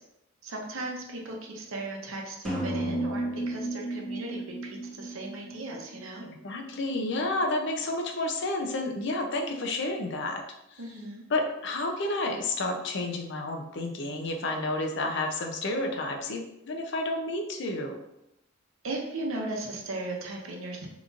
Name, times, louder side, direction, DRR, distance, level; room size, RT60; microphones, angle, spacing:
voice 1, 0.4-6.3 10.8-11.3 18.8-20.9, right 2 dB, 80° right, 0 dB, 0.7 m, -37 dB
sound 1, 2.4-6.2, right 1 dB, ahead, 0.8 m, -33 dB
voice 2, 6.2-10.4 10.7-10.8 11.3-18.0, left 2 dB, 60° left, 4 dB, 0.5 m, -30 dB
3.8 x 3.0 x 2.4 m, 0.85 s
head